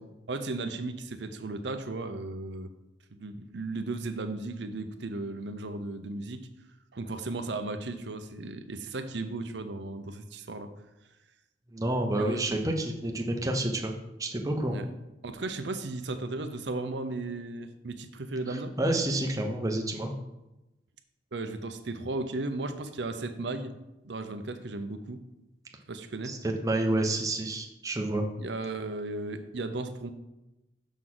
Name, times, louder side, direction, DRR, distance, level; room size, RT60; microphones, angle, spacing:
voice 1, 0.3-2.7 3.1-6.5 6.9-10.7 12.2-12.5 14.6-14.8 15.2-18.7 21.3-23.7 24.0-25.2 25.9-26.3 28.4-30.1, right 2 dB, 70° right, 8 dB, 0.6 m, -35 dB
voice 2, 11.7-13.9 14.2-14.8 18.5-20.1 26.2-26.4 26.6-28.3, right 1 dB, 20° right, 2 dB, 0.8 m, -29 dB
6.2 x 3.8 x 6.1 m, 0.97 s
head